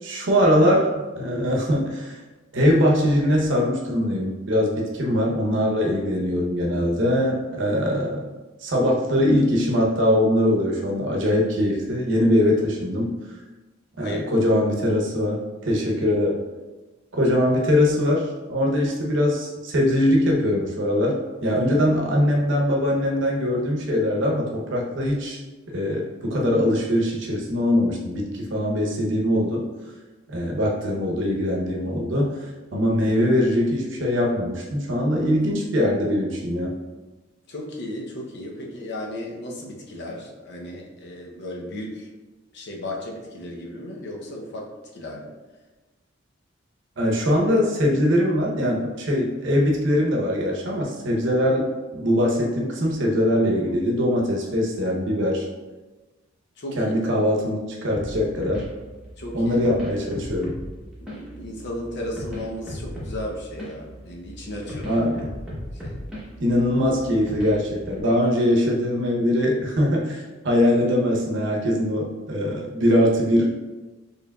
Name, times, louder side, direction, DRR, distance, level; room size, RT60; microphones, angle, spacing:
voice 1, 0.0-2.2 2.5-8.3 8.6-13.1 14.0-16.4 17.1-25.4 25.7-29.6 30.3-32.3 32.7-36.7 47.0-55.5 56.8-58.6 59.3-60.6 64.9-65.2 66.4-73.5, left 1 dB, 65° right, -1 dB, 0.8 m, -22 dB
voice 2, 37.5-42.1 42.5-45.3 56.6-57.0 59.2-59.6 61.0-65.1 65.7-66.0, left 1 dB, 60° left, -1 dB, 0.7 m, -35 dB
sound 1, 57.9-68.0, equal, 5° right, 1.0 m, -37 dB
4.6 x 3.2 x 2.3 m, 1.2 s
head